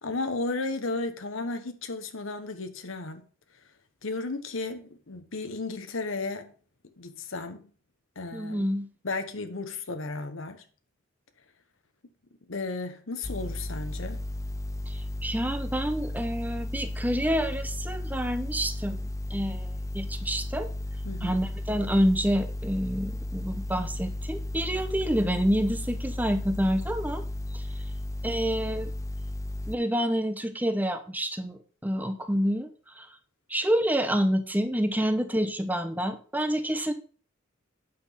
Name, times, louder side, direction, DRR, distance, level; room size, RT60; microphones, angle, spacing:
voice 1, 0.0-3.2 4.0-6.5 7.0-7.6 8.2-8.6 9.0-10.6 12.5-14.2 21.0-21.4, left 3 dB, 80° left, 1.1 m, -34 dB
voice 2, 8.3-8.9 14.9-19.0 19.3-20.7 21.2-27.2 27.5-27.7 28.2-28.9 29.7-33.1 33.5-36.9, equal, 10° right, 0.9 m, -28 dB
sound 1, 13.2-29.8, left 1 dB, 15° left, 0.5 m, -34 dB
8.8 x 6.0 x 5.7 m
head